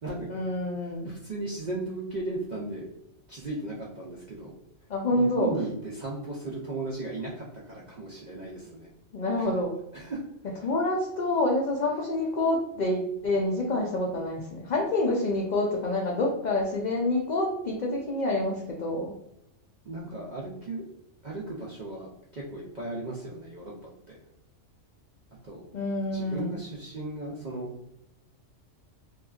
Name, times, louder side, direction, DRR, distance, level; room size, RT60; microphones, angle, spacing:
voice 1, 0.3-1.1 4.9-5.5 9.1-9.8 10.6-19.1 25.7-26.6, left 2 dB, 75° left, -1 dB, 0.4 m, -27 dB
voice 2, 1.0-2.8 3.3-4.5 5.1-8.9 9.4-9.5 9.9-10.2 10.5-10.7 19.9-20.8 21.2-23.7 25.4-25.6 26.1-27.7, right 2 dB, 60° right, -4 dB, 0.4 m, -36 dB
2.9 x 2.4 x 2.3 m, 0.82 s
omnidirectional pair, 1.3 m